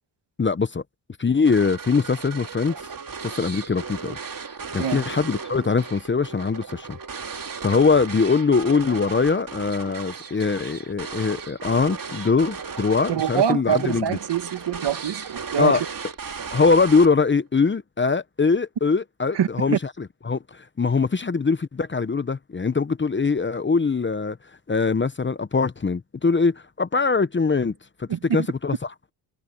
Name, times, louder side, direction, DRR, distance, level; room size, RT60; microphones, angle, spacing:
voice 1, 0.4-0.8 1.2-2.7 3.2-4.2 4.7-7.0 7.6-14.2 15.6-15.8 16.5-24.4 24.7-27.7 28.0-28.8, left 4 dB, 25° left, 0.9 m, -22 dB
sound 1, 1.4-17.4, right 5 dB, 45° right, 3.3 m, -36 dB
voice 2, 13.1-15.9 19.3-19.8 28.1-28.2, right 9 dB, 60° right, 2.0 m, -24 dB
cardioid pair, 70°, 46 cm